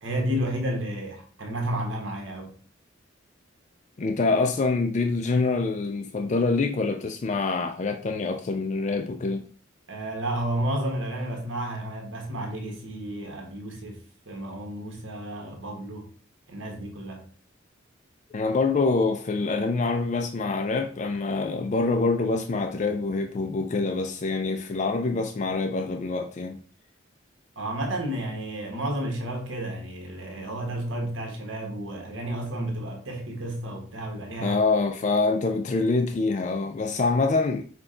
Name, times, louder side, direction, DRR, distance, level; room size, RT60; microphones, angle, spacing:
voice 1, 0.0-2.5 9.9-16.1 16.5-17.2 27.6-34.6, right 1 dB, 75° right, 1.3 m, -31 dB
voice 2, 4.0-9.5 18.3-26.6 34.4-37.6, left 3 dB, 35° left, 0.3 m, -25 dB
5.9 x 2.3 x 3.7 m
head